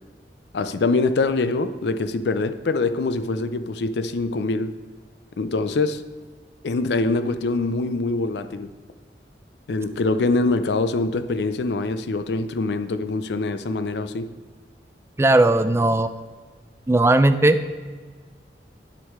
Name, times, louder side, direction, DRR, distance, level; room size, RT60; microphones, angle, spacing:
voice 1, 0.5-4.7 5.4-6.0 6.6-8.7 9.7-14.3, left 3 dB, 75° left, 0.5 m, -24 dB
voice 2, 15.2-16.1 16.9-17.6, right 2 dB, 15° right, 0.4 m, -17 dB
10.0 x 6.2 x 4.7 m
head